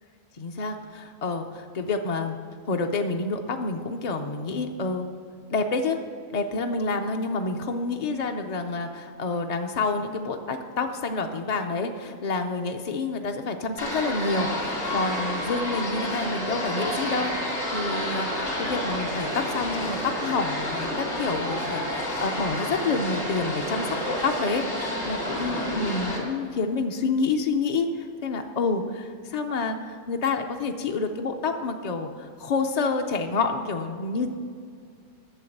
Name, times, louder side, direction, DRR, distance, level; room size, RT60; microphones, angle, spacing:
voice 1, 0.4-2.4 2.7-5.1 5.5-6.0 6.3-34.3, left 3 dB, 55° left, 4 dB, 0.4 m, -28 dB
sound 1, 13.8-26.2, equal, 80° left, 3.1 m, -30 dB
9.1 x 6.9 x 7.8 m, 2.3 s
omnidirectional pair, 1.4 m